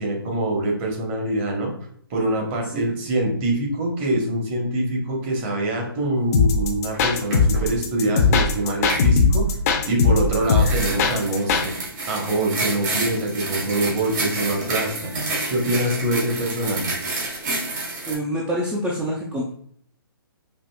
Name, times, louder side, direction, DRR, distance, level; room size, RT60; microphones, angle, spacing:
voice 1, 0.0-1.7 2.1-9.5 9.9-11.7 12.1-15.1 15.5-16.9, right 1 dB, 30° right, 0 dB, 1.0 m, -24 dB
sound 1, 6.3-11.7, left 4 dB, 40° left, 0.5 m, -19 dB
sound 2, 6.9-7.0 7.3-7.6 8.9-9.1 10.4-18.1, right 2 dB, 50° right, 1.4 m, -29 dB
voice 2, 18.1-19.5, equal, 5° right, -4 dB, 0.3 m, -26 dB
5.1 x 2.5 x 2.2 m, 0.63 s
hypercardioid pair, 140°, 13 cm